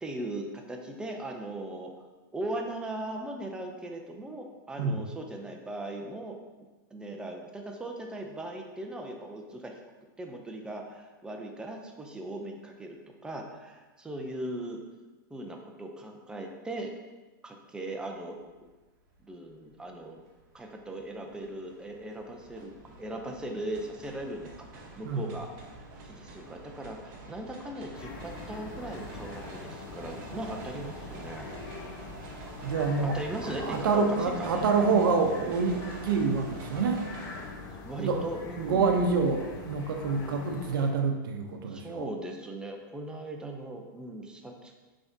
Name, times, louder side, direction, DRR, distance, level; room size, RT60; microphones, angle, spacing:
voice 1, 0.0-1.9 2.3-6.4 6.9-9.7 10.2-13.0 13.2-14.8 15.3-16.9 17.4-18.5 19.3-20.2 20.5-22.7 23.0-25.5 26.0-31.5 33.0-34.7 37.8-39.0 41.7-44.8, right 1 dB, 5° right, 2 dB, 0.5 m, -38 dB
sound 1, 18.5-18.6 19.0-37.5, right 2 dB, 50° right, 1.0 m, -47 dB
sound 2, 27.9-40.9, left 3 dB, 35° left, 0.8 m, -43 dB
voice 2, 32.6-33.2 33.6-37.0 38.0-38.2 38.6-42.1, right 4 dB, 75° right, 4 dB, 0.7 m, -27 dB
5.7 x 3.5 x 2.7 m, 1.2 s
hypercardioid pair, 135°, 11 cm